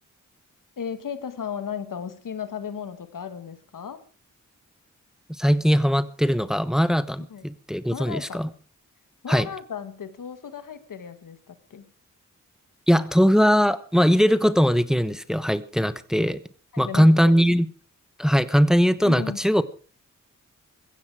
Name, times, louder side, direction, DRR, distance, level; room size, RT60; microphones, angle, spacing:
voice 1, 0.8-4.0 7.3-7.4 7.9-8.4 9.2-11.9 16.7-17.4 19.0-19.4, left 7 dB, 85° left, 11 dB, 1.8 m, -35 dB
voice 2, 5.4-8.5 9.3-9.5 12.9-16.4 16.8-17.7 18.2-19.6, equal, ahead, 14 dB, 1.1 m, -20 dB
15.5 x 15.5 x 4.8 m, 0.39 s
wide cardioid pair, 85°, 32 cm